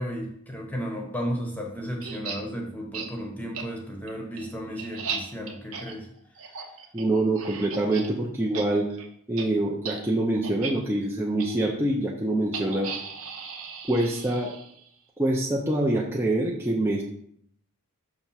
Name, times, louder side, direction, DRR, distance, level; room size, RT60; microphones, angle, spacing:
voice 1, 0.0-6.1, equal, 5° left, 1 dB, 0.9 m, -34 dB
sound 1, 2.0-2.4 2.9-3.1 3.6-3.7 4.1-8.1 8.4-8.7 8.9-9.1 9.4-9.5 9.8-10.0 10.4-10.7 11.4-11.5 12.5-14.9, right 6 dB, 65° right, 0.9 m, -36 dB
voice 2, 6.9-8.9 9.3-12.9 13.9-14.6 15.2-17.0, right 1 dB, 10° right, -2 dB, 0.5 m, -25 dB
5.9 x 3.3 x 5.7 m, 0.68 s
head